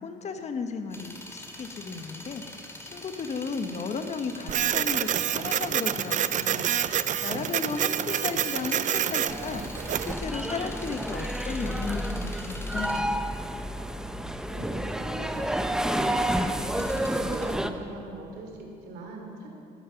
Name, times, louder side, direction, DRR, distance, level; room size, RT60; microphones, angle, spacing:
voice 1, 0.0-6.7 7.2-13.2, left 4 dB, 40° left, 7 dB, 1.3 m, -35 dB
sound 1, 0.9-18.5 18.7-18.8, left 1 dB, 15° left, 2.6 m, -45 dB
Printer, 4.5-10.1, right 10 dB, 45° right, 0.5 m, -27 dB
sound 2, 9.3-17.7, right 1 dB, 5° right, 0.8 m, -30 dB
voice 2, 14.5-19.5, right 2 dB, 80° right, 1 dB, 3.6 m, -41 dB
18.0 x 13.0 x 5.9 m, 2.5 s
cardioid pair, 110°, 17 cm